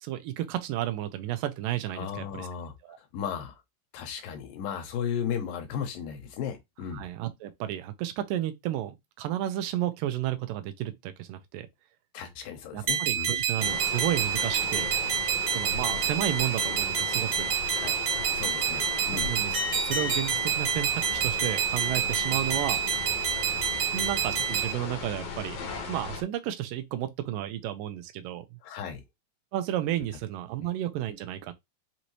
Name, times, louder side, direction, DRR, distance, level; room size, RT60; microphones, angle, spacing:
voice 1, 0.0-2.5 2.8-3.0 6.9-11.7 12.7-14.9 15.5-17.5 19.2-19.5 19.8-22.8 23.5-23.7 23.9-25.6 25.9-28.5 29.5-31.5, right 13 dB, 85° right, 2.3 m, -32 dB
voice 2, 1.9-3.6 3.9-7.0 12.1-13.3 17.7-17.9 18.3-19.3 28.6-29.0, left 8 dB, 85° left, 2.7 m, -35 dB
sound 1, 12.9-24.7, right 8 dB, 55° right, 2.1 m, -28 dB
sound 2, 13.6-26.2, left 5 dB, 65° left, 1.6 m, -37 dB
6.1 x 2.7 x 3.1 m
omnidirectional pair, 3.9 m